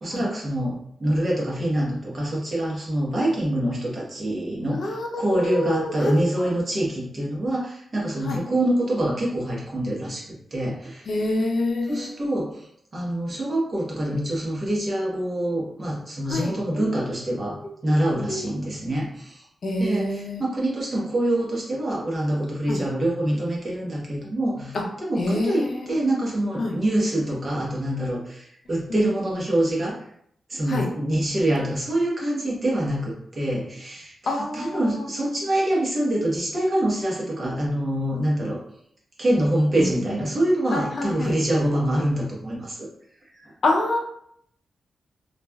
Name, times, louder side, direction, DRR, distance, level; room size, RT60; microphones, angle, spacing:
voice 1, 0.0-10.2 10.5-11.1 11.9-12.6 12.9-17.6 17.8-19.4 19.8-30.0 30.5-38.6 39.2-42.9 43.4-43.5, right 1 dB, 40° right, -5 dB, 1.0 m, -25 dB
voice 2, 4.7-6.1 6.4-6.5 8.2-8.4 11.1-12.1 16.3-16.9 18.3-18.5 19.6-20.4 22.7-22.8 24.7-24.8 25.2-25.9 26.6-26.7 28.9-29.0 30.7-30.9 34.3-35.0 39.8-40.1 40.7-41.3 43.6-44.0, left 2 dB, 60° left, 1 dB, 0.5 m, -27 dB
3.0 x 2.4 x 2.3 m, 0.69 s
wide cardioid pair, 120°, 0 cm